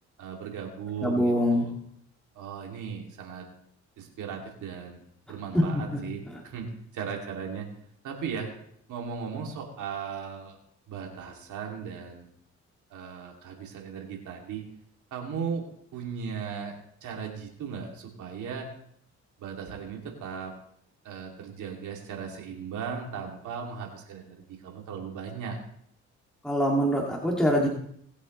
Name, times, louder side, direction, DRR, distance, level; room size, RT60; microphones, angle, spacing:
voice 1, 0.2-1.8 2.3-3.5 4.0-5.0 5.3-7.7 8.0-8.5 8.9-10.6 10.9-12.3 12.9-14.6 15.1-15.7 15.9-16.7 17.0-18.7 19.4-20.5 21.0-25.6, right 6 dB, 80° right, 0 dB, 2.8 m, -37 dB
voice 2, 1.0-1.7 5.5-5.6 5.9-6.0 26.4-27.7, equal, ahead, -3 dB, 2.4 m, -24 dB
20.0 x 8.2 x 3.2 m, 0.68 s
cardioid pair, 90°, 30 cm